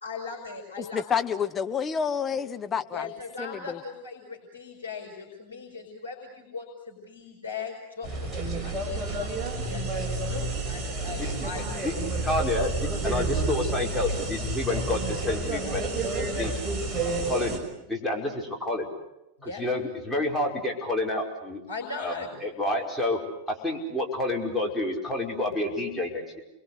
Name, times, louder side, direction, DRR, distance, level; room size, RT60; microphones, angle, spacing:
voice 1, 0.0-1.2 2.9-9.3 9.6-12.0 19.4-19.6 21.7-22.5, left 4 dB, 75° left, 0 dB, 5.4 m, -39 dB
voice 2, 0.8-3.1 3.4-3.8, left 7 dB, 20° left, 7 dB, 1.3 m, -29 dB
sound 1, 8.0-17.6, right 2 dB, 15° right, 5.7 m, -30 dB
voice 3, 12.2-16.0 16.4-16.5 17.3-18.9 19.4-21.6 22.0-22.1 22.4-23.2 23.5-26.4, left 2 dB, ahead, -2 dB, 5.4 m, -29 dB
30.0 x 22.5 x 8.2 m, 0.90 s
figure-of-eight pair, 90°, 0 cm